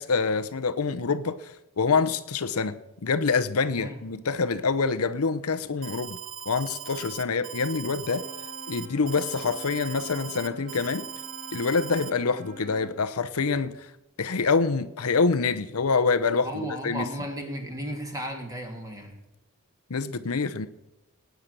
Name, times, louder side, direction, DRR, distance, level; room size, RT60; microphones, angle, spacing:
voice 1, 0.0-6.2 6.5-8.3 8.7-11.1 11.5-13.9 14.2-17.1 19.9-20.7, left 4 dB, 75° left, 0.8 m, -26 dB
Alarm, 5.8-12.1, right 10 dB, 65° right, 1.1 m, -39 dB
Wind instrument woodwind instrument, 8.0-13.0, equal, 30° right, 1.4 m, -46 dB
voice 2, 16.4-19.1, right 1 dB, 15° right, 2.9 m, -34 dB
19.0 x 9.2 x 6.8 m
head